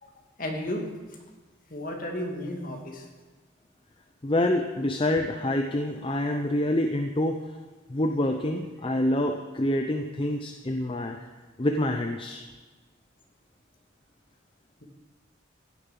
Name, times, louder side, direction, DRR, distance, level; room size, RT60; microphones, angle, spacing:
voice 1, 0.4-0.8 1.7-3.1, left 1 dB, 45° left, 1 dB, 2.3 m, -33 dB
voice 2, 4.2-7.4 7.9-11.3 11.6-12.5, left 1 dB, 30° left, 4 dB, 0.6 m, -27 dB
16.0 x 10.0 x 5.4 m, 1.3 s
head